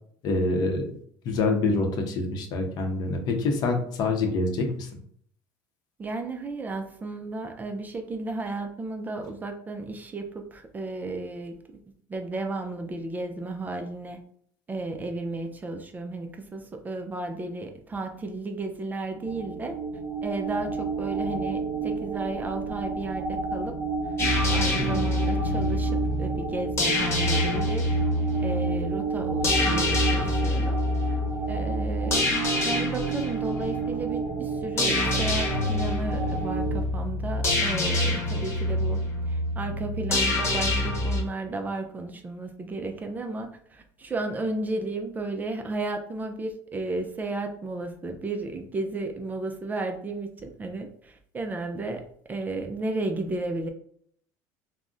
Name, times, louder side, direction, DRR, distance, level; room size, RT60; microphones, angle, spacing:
voice 1, 0.2-1.0 1.2-4.9 24.8-25.0, left 3 dB, 55° left, 4 dB, 0.6 m, -26 dB
voice 2, 6.0-11.8 12.1-14.2 14.7-19.8 20.2-23.7 24.5-27.8 28.4-30.8 31.1-31.2 31.5-39.0 39.3-53.7, right 2 dB, 20° right, 5 dB, 0.3 m, -33 dB
sound 1, 19.2-36.8, right 4 dB, 90° right, 0.5 m, -31 dB
sound 2, 24.2-41.2, left 2 dB, 30° left, 0.9 m, -27 dB
2.4 x 2.0 x 3.6 m, 0.64 s
supercardioid pair, 115°, 8 cm